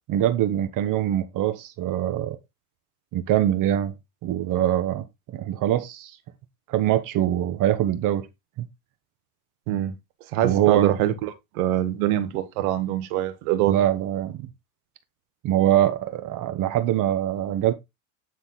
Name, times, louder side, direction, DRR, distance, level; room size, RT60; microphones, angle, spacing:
voice 1, 0.1-2.4 3.1-4.0 4.2-5.0 5.3-6.2 6.7-8.3 8.6-8.7 10.4-10.9 13.6-14.5 15.4-17.7, right 12 dB, 45° right, 1.1 m, -23 dB
voice 2, 10.3-13.8, right 12 dB, 70° right, 1.6 m, -24 dB
9.9 x 4.0 x 3.9 m
supercardioid pair, 115°, 44 cm